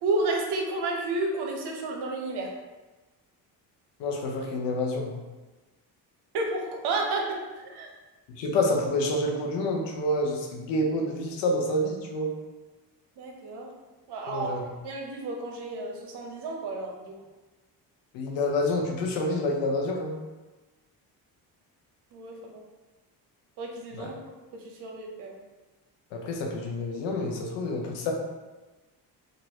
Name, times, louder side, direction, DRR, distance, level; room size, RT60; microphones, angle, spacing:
voice 1, 0.0-2.5 6.3-7.2 7.5-7.9 13.2-13.7 14.1-14.6 14.8-17.1 22.1-22.6 23.6-24.2 24.5-25.4, right 2 dB, 65° right, 1 dB, 0.8 m, -31 dB
voice 2, 4.0-5.2 8.4-12.3 14.3-14.6 18.1-20.2 23.9-24.1 26.1-28.1, left 1 dB, 85° left, 2 dB, 0.7 m, -28 dB
3.0 x 2.5 x 2.8 m, 1.2 s
cardioid pair, 90°, 42 cm